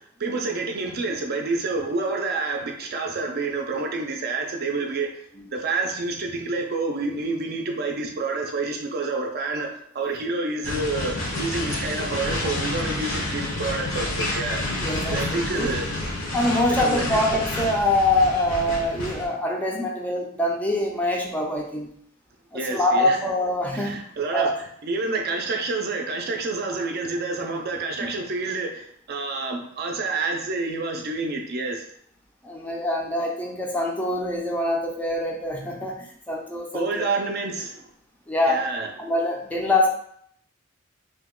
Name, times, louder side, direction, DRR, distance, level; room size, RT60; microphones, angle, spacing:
voice 1, 0.0-5.1 5.5-14.6 15.1-15.9 16.7-17.2 22.5-23.2 23.7-24.5 24.8-31.8 36.7-37.9 38.5-38.9, right 3 dB, 50° right, 3 dB, 0.5 m, -28 dB
sound 1, 10.6-19.3, left 1 dB, 70° left, 0.9 m, -29 dB
voice 2, 14.8-15.7 16.3-21.9 22.5-24.0 24.3-24.5 32.4-36.9 38.3-38.6 39.0-39.9, left 1 dB, 10° left, -1 dB, 0.4 m, -24 dB
2.7 x 2.2 x 3.6 m, 0.66 s
head